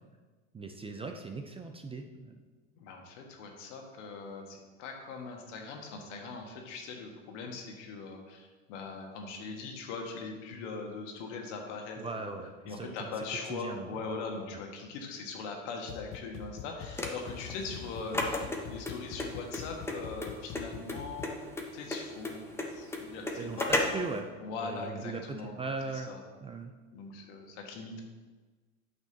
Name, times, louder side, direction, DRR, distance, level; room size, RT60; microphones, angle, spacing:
voice 1, 0.5-2.4 12.0-13.1 13.5-13.9 23.4-24.3 24.6-26.1 26.4-26.7, right 4 dB, 15° right, 5 dB, 0.5 m, -39 dB
voice 2, 2.7-12.3 12.6-21.4 21.7-23.7 24.4-25.5 25.9-26.2 26.9-28.0, left 4 dB, 70° left, 2 dB, 1.5 m, -41 dB
sound 1, 15.9-21.4, left 8 dB, 55° left, 0.6 m, -45 dB
sound 2, 17.0-24.1, left 2 dB, 5° left, 1.0 m, -34 dB
8.8 x 6.0 x 2.9 m, 1.3 s
hypercardioid pair, 95°, 38 cm